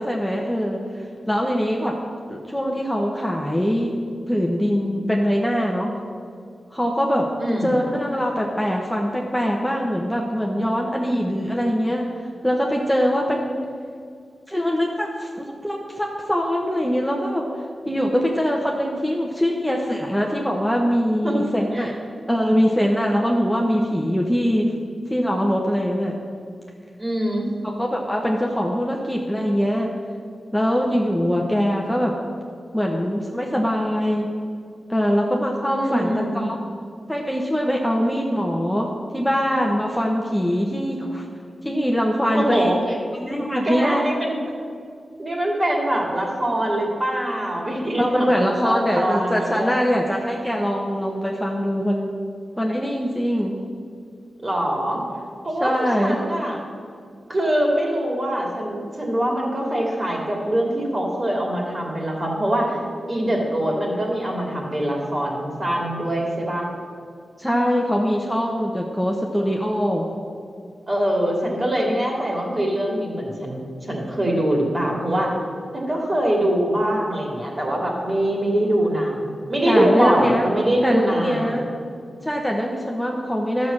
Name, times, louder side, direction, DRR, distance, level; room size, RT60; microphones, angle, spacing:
voice 1, 0.0-1.9 2.3-3.9 4.3-5.9 6.7-7.2 7.6-13.6 14.5-17.5 17.8-21.9 22.3-24.7 25.1-26.1 27.6-29.9 30.5-32.1 32.7-34.3 34.9-36.6 37.1-41.3 41.6-42.7 43.2-44.1 48.0-52.1 52.6-53.5 55.6-56.2 67.4-70.1 79.7-80.5 80.8-81.7 82.2-83.7, equal, 5° left, -1 dB, 1.1 m, -22 dB
voice 2, 7.4-7.8 21.2-21.4 21.7-21.9 27.0-27.4 35.7-36.5 42.3-42.7 43.6-44.4 45.2-49.7 54.4-55.0 55.4-56.6 57.3-62.8 63.1-66.7 70.9-75.3 75.7-81.6, right 1 dB, 35° right, -1 dB, 2.8 m, -23 dB
12.0 x 6.4 x 7.4 m, 2.2 s
cardioid pair, 70°, 0 cm